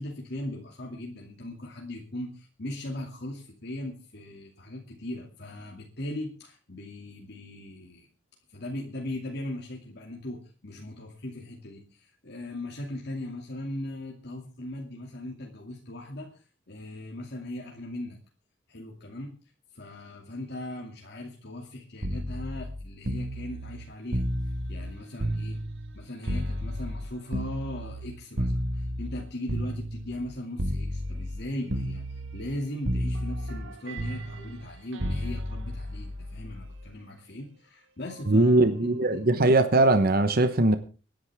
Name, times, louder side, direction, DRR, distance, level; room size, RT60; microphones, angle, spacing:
voice 1, 0.0-8.1 8.5-18.2 18.7-19.3 19.7-24.3 24.7-25.6 25.9-39.2, left 1 dB, 60° left, 2.5 m, -39 dB
sound 1, 22.0-26.0 26.3-30.3 30.6-31.4 31.7-32.6 32.8-36.8 38.1-38.3, equal, 75° right, 1.8 m, -32 dB
voice 2, 38.3-40.8, right 2 dB, 50° right, 1.0 m, -20 dB
25.0 x 10.5 x 3.6 m
head